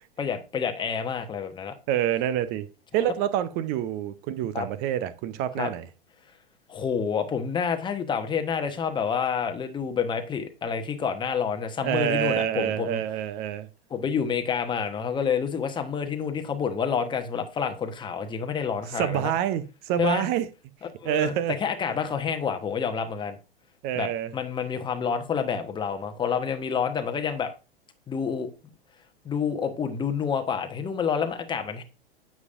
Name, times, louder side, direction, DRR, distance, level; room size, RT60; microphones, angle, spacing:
voice 1, 0.2-1.7 4.5-4.7 5.6-5.7 6.7-13.0 13.9-19.3 20.0-20.3 21.0-21.3 21.6-23.4 23.9-27.5 28.1-28.5 29.2-31.8, left 6 dB, 15° left, 1.1 m, -28 dB
voice 2, 1.9-2.7 2.9-5.9 11.8-13.7 18.9-20.5 21.0-21.5 23.8-24.3, right 11 dB, 35° right, 0.7 m, -27 dB
9.5 x 7.3 x 2.6 m
figure-of-eight pair, 95°, 30 cm